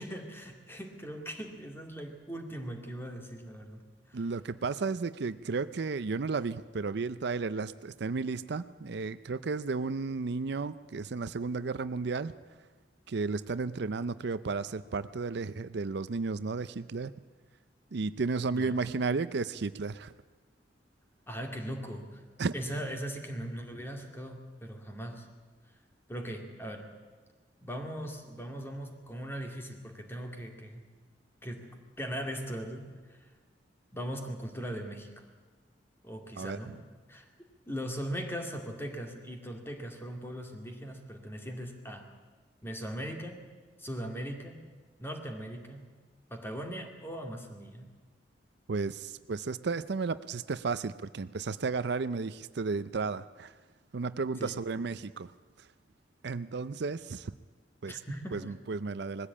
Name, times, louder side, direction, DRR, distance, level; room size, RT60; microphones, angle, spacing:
voice 1, 0.0-3.8 4.1-4.2 18.4-18.8 21.3-22.2 22.5-25.3 26.1-26.9 27.6-30.8 31.4-31.7 32.0-33.2 33.9-35.2 36.0-36.7 37.1-37.3 37.7-42.1 42.6-43.4 43.8-44.6 45.0-45.8 46.3-47.9 54.4-54.6 57.9-58.5, equal, 15° left, 3 dB, 2.3 m, -39 dB
voice 2, 4.1-12.3 13.1-17.1 17.9-20.1 22.4-22.5 36.4-36.8 48.7-53.5 53.9-55.3 55.6-55.7 56.2-57.3 57.8-58.0 58.3-59.3, right 4 dB, 65° right, 14 dB, 0.5 m, -33 dB
20.0 x 15.0 x 8.5 m, 1.4 s
head